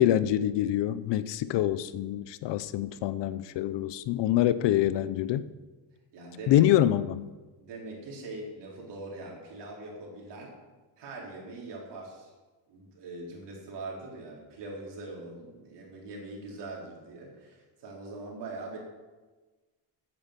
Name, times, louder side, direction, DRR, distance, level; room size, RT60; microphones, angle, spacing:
voice 1, 0.0-5.5 6.5-7.2, left 12 dB, 75° left, 15 dB, 0.8 m, -25 dB
voice 2, 6.1-6.6 7.6-10.5 11.0-12.3 12.7-18.8, right 2 dB, 70° right, -2 dB, 4.4 m, -42 dB
9.5 x 8.7 x 7.6 m, 1.3 s
cardioid pair, 135°, 43 cm